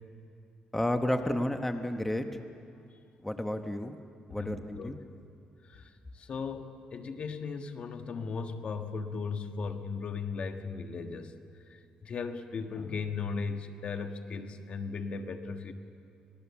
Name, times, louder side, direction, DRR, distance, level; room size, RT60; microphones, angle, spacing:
voice 1, 0.7-2.2 3.2-5.0, left 1 dB, 10° left, 6 dB, 1.1 m, -31 dB
voice 2, 4.3-5.0 5.7-5.9 6.2-11.3 11.7-15.7, left 5 dB, 50° left, 6 dB, 1.5 m, -37 dB
25.5 x 20.0 x 7.2 m, 2.4 s
cardioid pair, 110°, 3 cm